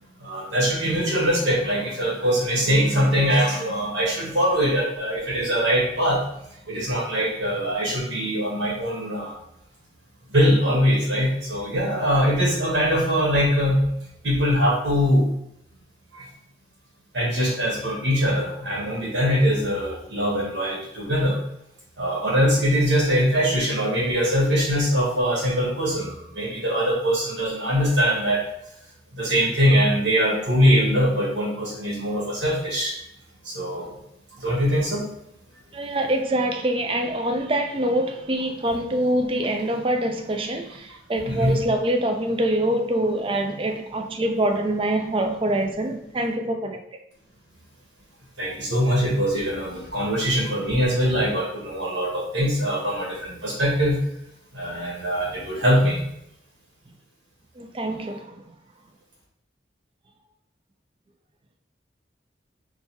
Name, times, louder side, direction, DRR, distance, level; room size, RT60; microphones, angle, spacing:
voice 1, 0.2-6.2 6.7-9.3 10.3-13.8 14.2-15.3 16.1-16.2 17.1-21.4 22.0-28.4 29.1-32.9 33.4-33.9 34.4-35.1 41.2-41.5 48.4-54.0 54.5-56.0, equal, 70° right, -4 dB, 1.5 m, -22 dB
voice 2, 35.7-46.8 57.6-58.4, right 1 dB, 30° right, 5 dB, 0.4 m, -25 dB
3.9 x 2.3 x 4.2 m, 0.78 s
head